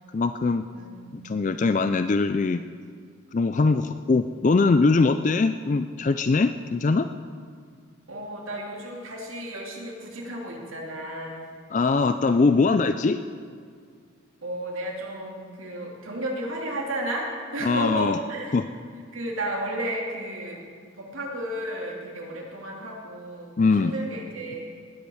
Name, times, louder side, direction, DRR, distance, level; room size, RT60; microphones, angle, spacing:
voice 1, 0.1-0.6 1.2-2.6 3.3-7.1 11.7-13.2 17.6-18.2 18.5-18.6 23.6-23.9, left 3 dB, 35° left, 10 dB, 0.3 m, -22 dB
voice 2, 0.7-1.1 8.1-11.5 14.4-18.6 19.1-20.6 21.0-24.6, right 1 dB, 80° right, -1 dB, 2.9 m, -33 dB
19.0 x 8.7 x 6.3 m, 2.1 s
head